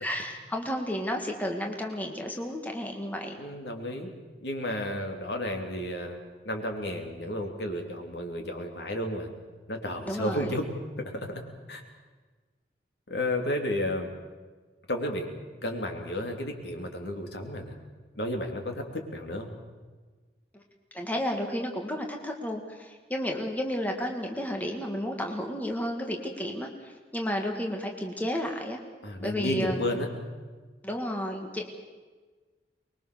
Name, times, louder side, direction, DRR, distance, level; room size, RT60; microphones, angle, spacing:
voice 1, 0.0-3.4 10.0-10.5 20.5-20.6 20.9-28.8 29.2-30.0 30.8-31.7, equal, 10° left, 2 dB, 1.9 m, -32 dB
voice 2, 3.4-4.1 4.4-6.2 6.5-9.3 9.7-10.7 11.0-11.4 11.7-11.8 13.1-14.1 14.9-15.3 15.6-17.8 18.2-19.5 29.0-30.1, left 1 dB, 75° left, 3 dB, 3.4 m, -32 dB
24.0 x 21.5 x 6.9 m, 1.4 s
head